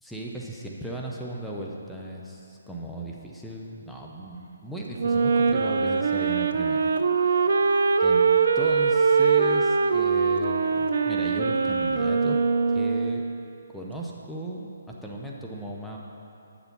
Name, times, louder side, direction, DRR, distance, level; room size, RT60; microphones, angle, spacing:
voice 1, 0.0-6.9 8.0-8.3 8.5-12.4 12.7-13.2 13.7-16.0, right 1 dB, ahead, -3 dB, 0.7 m, -36 dB
Wind instrument woodwind instrument, 5.0-13.4, right 5 dB, 60° right, 0.4 m, -22 dB
9.4 x 6.9 x 4.2 m, 2.6 s
figure-of-eight pair, 140°, 0 cm